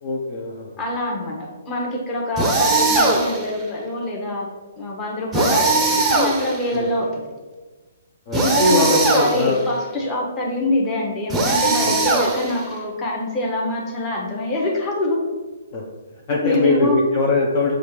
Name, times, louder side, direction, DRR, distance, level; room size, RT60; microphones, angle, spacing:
voice 1, 0.0-0.8 6.7-6.9 8.3-9.6 11.8-11.9 15.7-15.8 16.3-17.7, left 2 dB, 40° left, -3 dB, 0.6 m, -21 dB
voice 2, 0.8-4.5 4.7-7.2 8.3-15.2 16.4-17.0, left 1 dB, 20° left, -2 dB, 1.0 m, -25 dB
sound 1, 2.4-3.5 5.3-6.8 8.3-9.6 11.3-12.7, right 3 dB, 10° right, 0.6 m, -20 dB
6.5 x 2.4 x 3.1 m, 1.3 s
hypercardioid pair, 145°, 0 cm